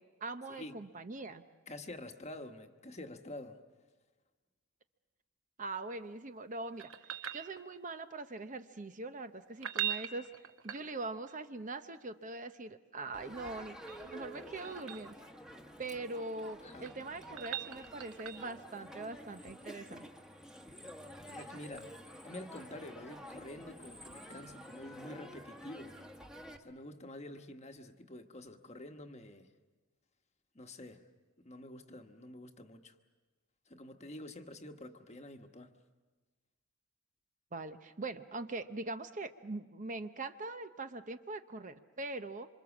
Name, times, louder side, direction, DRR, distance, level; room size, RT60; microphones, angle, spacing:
voice 1, 0.0-1.4 5.6-6.9 7.3-10.3 10.6-13.8 14.0-15.2 15.8-20.1 37.5-42.5, right 2 dB, 35° right, 9 dB, 0.8 m, -42 dB
voice 2, 1.7-3.6 16.6-16.9 21.3-21.9 22.2-26.0 26.6-29.5 30.5-31.0 31.4-32.9 33.7-35.7, left 1 dB, 30° left, 5 dB, 1.2 m, -48 dB
sound 1, 6.8-8.0 9.5-11.3 13.5-15.1 16.5-18.6 21.4-21.5, right 10 dB, 60° right, 1.2 m, -41 dB
Crowd, 13.1-26.6, equal, 5° right, 1.3 m, -50 dB
27.0 x 26.0 x 7.2 m, 1.3 s
head